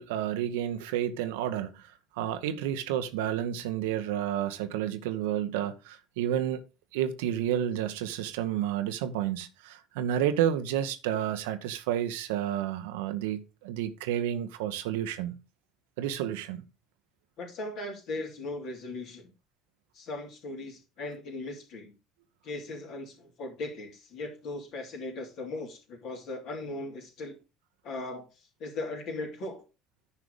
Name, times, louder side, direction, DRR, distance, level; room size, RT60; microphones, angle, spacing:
voice 1, 0.0-1.9 2.1-6.6 6.9-15.3 16.0-16.6, right 11 dB, 70° right, 0.9 m, -30 dB
voice 2, 17.4-19.3 19.9-21.9 22.4-27.4 27.8-28.2 28.6-29.6, left 2 dB, 55° left, 3.1 m, -38 dB
9.9 x 4.9 x 5.0 m
hypercardioid pair, 65°, 0 cm